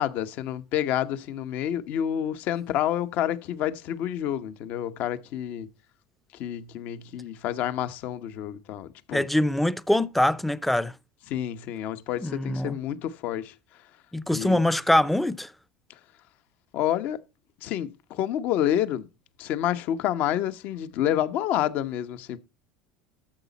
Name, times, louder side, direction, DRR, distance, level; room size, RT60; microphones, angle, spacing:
voice 1, 0.0-5.7 6.4-9.3 11.3-13.5 14.3-14.6 16.7-17.2 17.6-19.0 19.4-22.4, left 11 dB, 60° left, 1.0 m, -28 dB
voice 2, 9.1-10.9 12.2-12.8 14.1-15.5, left 1 dB, 5° left, 0.6 m, -23 dB
12.5 x 7.1 x 4.1 m
supercardioid pair, 105°, 3 cm